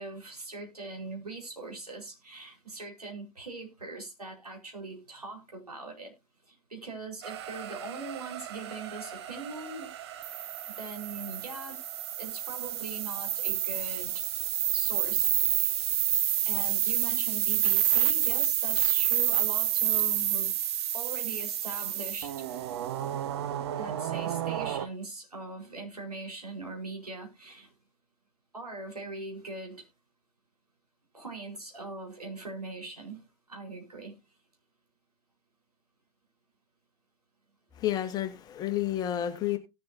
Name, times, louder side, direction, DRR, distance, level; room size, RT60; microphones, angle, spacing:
voice 1, 0.0-6.1 6.5-9.9 10.7-11.8 12.2-14.2 14.7-15.8 16.4-20.6 20.9-22.3 23.8-27.7 28.5-29.8 31.1-33.2 33.5-34.2, right 3 dB, 80° right, 4.7 m, -41 dB
sound 1, 7.2-24.9, right 11 dB, 45° right, 1.0 m, -29 dB
voice 2, 37.8-39.6, left 12 dB, 20° left, 1.5 m, -30 dB
18.0 x 7.5 x 2.7 m
figure-of-eight pair, 110°, 19 cm